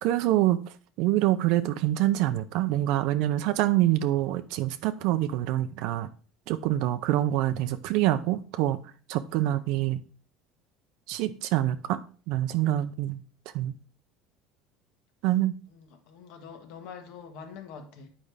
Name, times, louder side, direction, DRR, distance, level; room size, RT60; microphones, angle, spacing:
voice 1, 0.0-0.6 1.0-6.1 6.5-8.8 9.1-10.0 11.1-12.0 12.3-13.2 13.5-13.7 15.2-15.5, right 14 dB, 60° right, 0.5 m, -25 dB
voice 2, 15.7-18.1, left 6 dB, 65° left, 1.4 m, -45 dB
8.6 x 5.0 x 3.3 m
cardioid pair, 160°, 0 cm